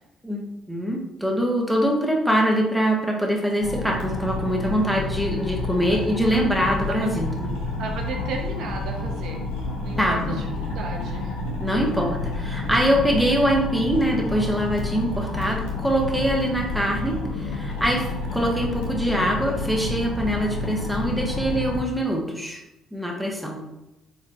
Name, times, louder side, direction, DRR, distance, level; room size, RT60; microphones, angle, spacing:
voice 1, 0.2-7.5 10.0-10.4 11.6-22.6 22.9-23.6, equal, 5° right, -1 dB, 1.1 m, -24 dB
sound 1, 3.6-21.8, left 2 dB, 65° left, 0.9 m, -29 dB
voice 2, 7.8-9.4 9.8-11.3, right 4 dB, 60° right, 1 dB, 0.5 m, -34 dB
4.5 x 4.2 x 2.6 m, 0.91 s
figure-of-eight pair, 45°, 0 cm